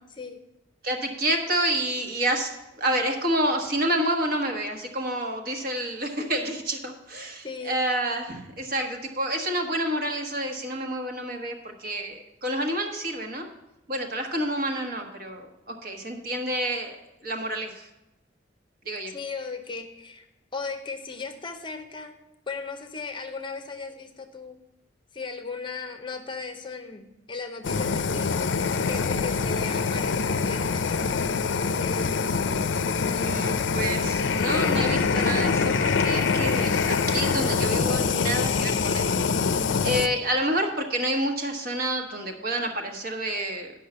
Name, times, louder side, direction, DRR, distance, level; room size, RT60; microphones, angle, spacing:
voice 1, 0.8-13.5 13.9-17.0 17.2-17.9 18.8-19.1 33.1-39.2 39.4-43.7, right 1 dB, 50° right, 3 dB, 1.3 m, -29 dB
voice 2, 7.4-7.8 19.1-20.3 20.5-22.2 22.5-24.6 25.1-28.4 28.8-32.5, left 4 dB, 25° left, 7 dB, 0.6 m, -37 dB
Fire, 27.6-40.1, left 5 dB, 75° left, 0.5 m, -25 dB
10.0 x 5.5 x 6.7 m, 0.94 s
head